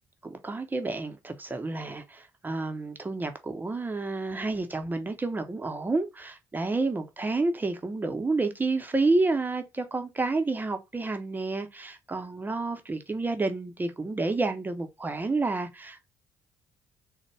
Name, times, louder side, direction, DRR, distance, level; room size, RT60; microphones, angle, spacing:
voice 1, 0.2-16.1, right 3 dB, 20° right, 0.7 m, -30 dB
3.9 x 2.2 x 3.3 m
hypercardioid pair, 50°, 9 cm